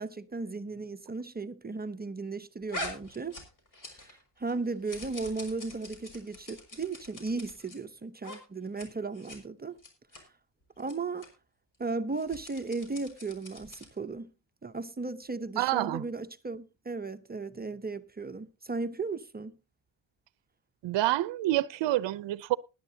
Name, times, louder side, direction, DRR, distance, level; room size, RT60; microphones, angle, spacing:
voice 1, 0.0-3.4 3.8-9.8 10.2-10.3 10.8-11.3 11.8-14.3 14.6-19.5, right 3 dB, 20° right, 0.7 m, -36 dB
sound 1, 2.7-4.2 4.5-7.8 8.2-8.4 8.7-8.9 9.1-9.4 9.8-10.2 10.8-10.9 11.2-11.3 12.1-14.0, left 1 dB, 45° left, 5.9 m, -44 dB
voice 2, 15.6-16.0 20.8-22.6, right 15 dB, 70° right, 0.7 m, -28 dB
19.5 x 11.0 x 2.8 m
cardioid pair, 100°, 44 cm